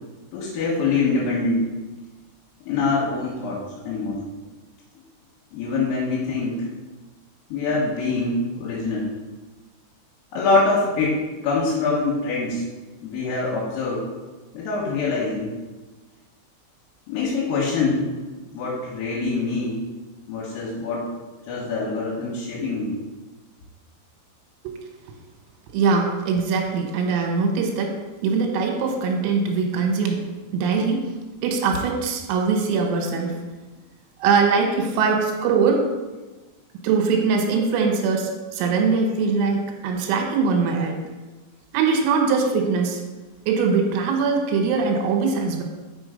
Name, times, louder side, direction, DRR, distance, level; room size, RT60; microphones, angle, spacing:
voice 1, 0.3-1.7 2.7-4.2 5.5-6.7 7.5-9.1 10.3-11.2 11.4-12.6 13.0-14.0 14.5-15.5 17.1-18.1 18.5-19.8 20.3-21.1 21.5-23.0, left 3 dB, 80° left, -7 dB, 4.0 m, -24 dB
voice 2, 25.7-27.9 28.2-30.2 30.5-31.1 31.4-33.4 34.2-35.9 36.8-41.0 41.7-43.0 43.5-45.6, right 5 dB, 85° right, 2 dB, 3.6 m, -22 dB
6.2 x 6.1 x 5.1 m, 1.2 s
omnidirectional pair, 5.9 m